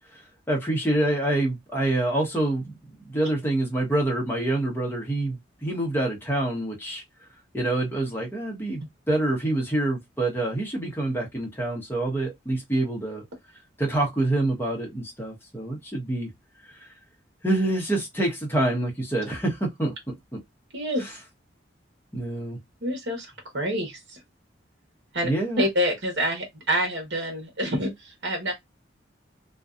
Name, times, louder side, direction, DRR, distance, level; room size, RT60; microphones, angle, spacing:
voice 1, 0.5-2.7 3.1-7.0 7.5-13.2 13.8-16.3 16.8-16.9 17.4-20.4 21.0-21.1 22.1-22.6 25.2-25.7, right 1 dB, 10° left, 0.9 m, -26 dB
voice 2, 20.7-21.1 22.8-24.2 25.1-25.3 25.6-28.5, equal, 65° right, 1.0 m, -27 dB
2.6 x 2.3 x 2.4 m
head